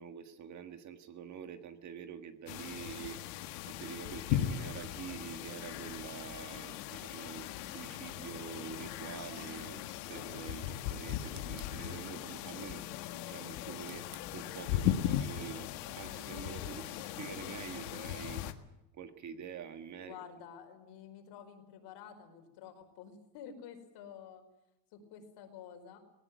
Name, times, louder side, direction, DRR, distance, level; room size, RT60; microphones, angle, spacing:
voice 1, 0.0-9.8 10.1-12.8 13.1-14.1 14.3-18.4 18.9-20.1, right 7 dB, 35° right, 8 dB, 1.6 m, -46 dB
sound 1, 2.5-18.5, left 12 dB, 80° left, 1.8 m, -38 dB
voice 2, 20.0-24.4 24.9-26.0, left 8 dB, 55° left, 5 dB, 4.8 m, -50 dB
19.0 x 18.0 x 9.4 m, 0.90 s
cardioid pair, 150°, 48 cm